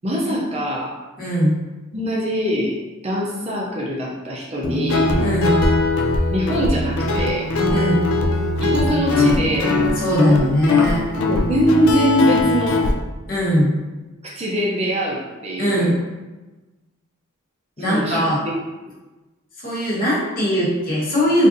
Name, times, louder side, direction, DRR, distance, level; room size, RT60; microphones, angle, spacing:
voice 1, 0.0-1.0 1.9-2.7 3.0-5.1 6.3-7.5 8.6-9.8 11.2-12.8 14.2-15.9 17.8-18.6, equal, 30° right, -3 dB, 0.5 m, -23 dB
voice 2, 1.2-1.6 5.2-5.7 7.7-8.0 10.0-11.0 13.3-13.8 15.6-16.0 17.8-18.4 19.6-21.5, equal, 40° left, -7 dB, 1.0 m, -20 dB
Guitar, 4.6-12.9, left 2 dB, 85° left, 0.4 m, -20 dB
3.9 x 2.5 x 2.5 m, 1.2 s
head